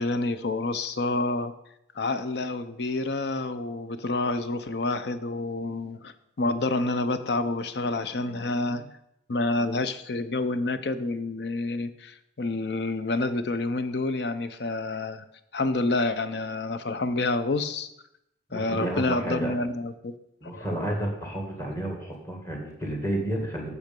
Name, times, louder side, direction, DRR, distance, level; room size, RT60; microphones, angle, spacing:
voice 1, 0.0-1.5 1.9-9.0 9.3-15.2 15.5-17.9 18.5-20.1 20.5-20.7, left 2 dB, 65° left, 11 dB, 0.6 m, -28 dB
voice 2, 18.5-19.5 20.4-23.7, right 1 dB, 15° left, 0 dB, 1.9 m, -31 dB
8.1 x 6.5 x 5.3 m, 0.79 s
head